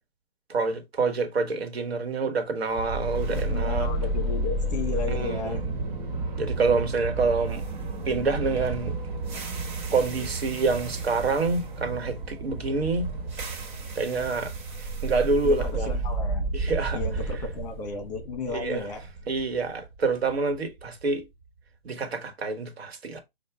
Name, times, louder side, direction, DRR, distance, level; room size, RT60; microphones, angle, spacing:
voice 1, 0.5-3.9 5.1-5.6 6.4-7.6 8.0-8.9 9.9-13.1 13.9-14.5 14.8-15.9 16.5-17.0 18.5-18.9 19.3-21.2 21.8-23.2, right 4 dB, 85° right, 1.4 m, -27 dB
sound 1, 2.8-20.8, right 2 dB, 50° right, 1.4 m, -31 dB
voice 2, 3.3-5.6 15.4-16.5 16.9-19.0, left 4 dB, 40° left, 1.3 m, -34 dB
5.9 x 2.4 x 3.4 m
hypercardioid pair, 155°, 30 cm